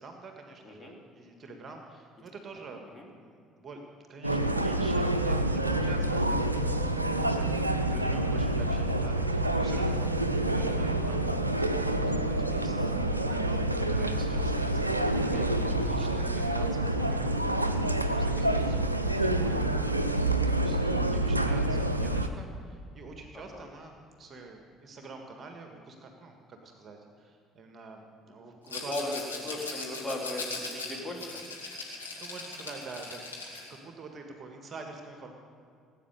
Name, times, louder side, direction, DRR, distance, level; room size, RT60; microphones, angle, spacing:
voice 1, 0.0-2.8 3.1-29.7 31.6-33.2 33.5-35.3, right 3 dB, 35° right, 3 dB, 1.8 m, -47 dB
sound 1, 4.2-22.3, right 1 dB, 90° right, 0.5 m, -27 dB
Rattle, 28.7-33.8, left 3 dB, 85° left, 1.9 m, -39 dB
voice 2, 28.7-31.3, left 1 dB, 20° left, 0 dB, 3.1 m, -37 dB
18.5 x 9.0 x 6.7 m, 2.3 s
figure-of-eight pair, 55°, 0 cm